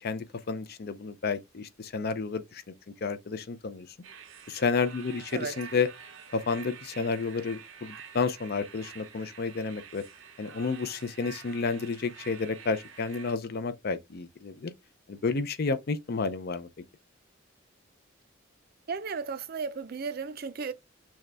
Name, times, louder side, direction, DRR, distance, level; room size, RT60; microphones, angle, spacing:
voice 1, 0.0-2.6 3.0-3.9 4.5-5.9 6.3-10.0 10.4-14.7 15.1-16.7, left 4 dB, 55° left, 0.5 m, -31 dB
sound 1, 4.0-13.3, right 6 dB, 90° right, 0.8 m, -48 dB
voice 2, 5.3-5.6 18.9-20.7, right 5 dB, 50° right, 0.5 m, -34 dB
6.2 x 2.3 x 3.3 m
head